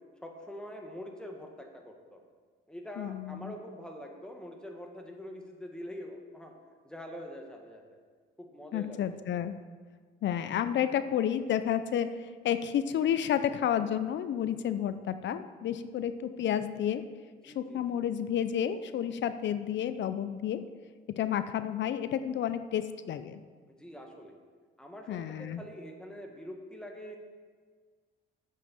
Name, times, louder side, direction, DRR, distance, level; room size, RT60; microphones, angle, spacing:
voice 1, 0.2-2.2 2.7-6.5 6.8-7.8 8.4-9.0 17.4-18.0 23.7-24.4 24.8-27.2, equal, 5° left, 1 dB, 1.6 m, -44 dB
voice 2, 3.0-3.5 8.7-9.6 10.2-12.1 12.4-17.0 17.4-20.6 21.2-23.4 25.1-25.6, left 9 dB, 65° left, 11 dB, 0.6 m, -31 dB
7.6 x 6.5 x 7.3 m, 1.6 s
cardioid pair, 90°, 20 cm